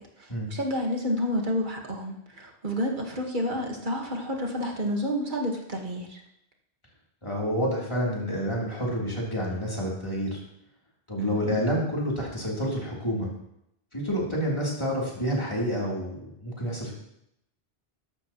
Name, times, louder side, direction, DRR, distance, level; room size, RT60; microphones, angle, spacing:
voice 1, 0.0-6.2 11.2-11.6, equal, 50° right, 1 dB, 1.9 m, -30 dB
voice 2, 7.2-10.4 11.1-13.3 13.9-16.9, equal, 25° left, -5 dB, 3.7 m, -29 dB
13.5 x 11.5 x 3.1 m, 0.78 s
omnidirectional pair, 1.1 m